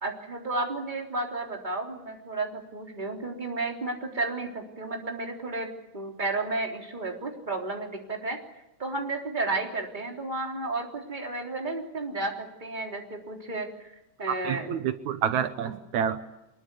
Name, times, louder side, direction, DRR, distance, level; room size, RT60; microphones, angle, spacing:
voice 1, 0.0-8.4 8.8-13.7 14.2-14.7, right 2 dB, 15° right, 1 dB, 3.4 m, -32 dB
voice 2, 14.4-16.2, right 9 dB, 80° right, 10 dB, 2.4 m, -28 dB
24.5 x 21.5 x 8.4 m, 0.89 s
omnidirectional pair, 3.3 m